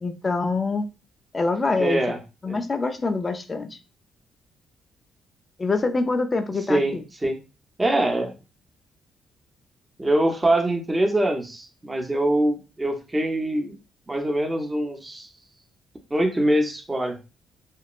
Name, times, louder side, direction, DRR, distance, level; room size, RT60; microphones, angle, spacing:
voice 1, 0.0-0.9 1.3-2.0 2.4-3.8 5.6-7.0, left 3 dB, 30° left, 0.4 m, -25 dB
voice 2, 1.8-2.2 2.5-2.6 6.7-7.0 7.2-7.4 7.8-8.3 10.0-13.7 14.1-15.3 16.1-17.2, right 1 dB, 15° right, 0.7 m, -23 dB
3.0 x 2.0 x 2.4 m
cardioid pair, 90°, 0 cm